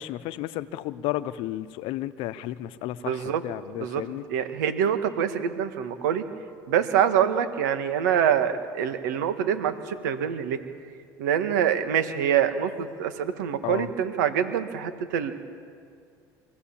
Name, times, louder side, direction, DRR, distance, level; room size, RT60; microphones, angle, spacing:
voice 1, 0.0-4.2 13.6-13.9, left 14 dB, 70° left, 15 dB, 0.8 m, -33 dB
voice 2, 3.0-3.4 3.8-4.0 4.3-6.2 6.7-10.6 11.2-15.3, right 9 dB, 85° right, 9 dB, 1.7 m, -25 dB
24.5 x 16.5 x 7.3 m, 2.3 s
supercardioid pair, 85°, 10 cm